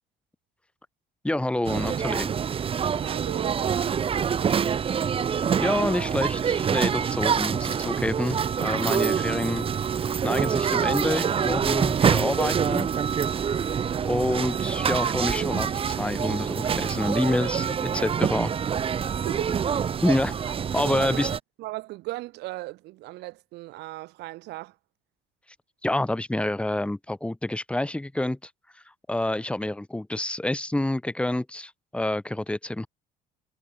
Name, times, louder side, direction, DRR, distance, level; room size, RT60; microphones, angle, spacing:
voice 1, 1.2-2.3 5.6-9.7 10.2-12.9 14.0-18.5 20.0-20.3 20.7-21.3 25.8-28.4 29.1-32.9, left 1 dB, 5° left, 1.5 m, -27 dB
sound 1, 1.6-21.4, right 7 dB, 35° right, 0.7 m, -26 dB
voice 2, 3.0-4.7 14.2-14.5 19.2-19.6 20.4-21.3 21.6-24.7, right 19 dB, 85° right, 2.7 m, -37 dB
cardioid pair, 110°, 17 cm